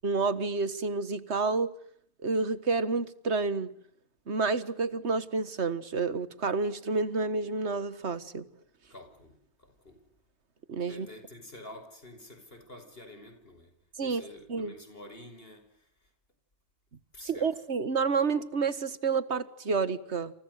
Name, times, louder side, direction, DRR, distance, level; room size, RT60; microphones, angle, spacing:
voice 1, 0.0-1.7 2.2-3.7 4.3-8.5 10.7-11.1 14.0-14.2 14.5-14.7 17.3-20.3, right 4 dB, 75° right, 1.9 m, -29 dB
voice 2, 8.9-10.1 10.9-13.7 14.0-16.1 17.1-17.6, left 1 dB, 55° left, 5.6 m, -49 dB
29.5 x 28.0 x 6.6 m
omnidirectional pair, 1.2 m